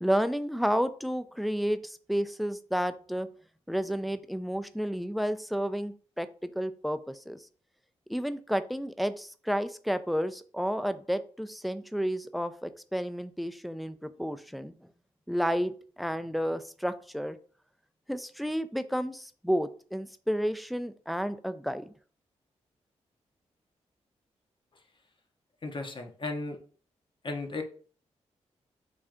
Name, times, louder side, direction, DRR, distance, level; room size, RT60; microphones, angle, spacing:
voice 1, 0.0-3.3 3.7-7.4 8.1-14.7 15.3-17.4 18.1-21.9, equal, ahead, 11 dB, 0.4 m, -31 dB
voice 2, 25.6-26.6 27.2-27.6, left 3 dB, 40° left, 4 dB, 0.7 m, -35 dB
3.3 x 2.6 x 3.7 m, 0.43 s
supercardioid pair, 50°, 12 cm